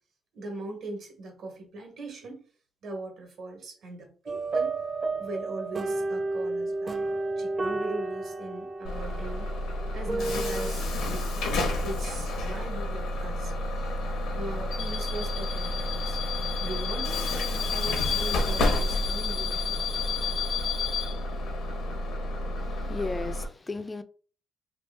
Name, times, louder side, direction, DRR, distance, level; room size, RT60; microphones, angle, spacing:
voice 1, 0.3-2.4 2.8-4.7 5.2-6.9 7.4-9.5 9.9-13.9 14.3-16.2 16.6-19.8, right 2 dB, 70° right, 1.2 m, -40 dB
sound 1, 4.3-10.7, right 3 dB, 35° right, 0.5 m, -31 dB
Bus / Alarm, 8.8-23.4, left 2 dB, 80° left, 0.8 m, -29 dB
voice 2, 22.6-24.0, left 3 dB, 25° left, 0.3 m, -35 dB
3.0 x 2.4 x 3.3 m
cardioid pair, 90°, 0 cm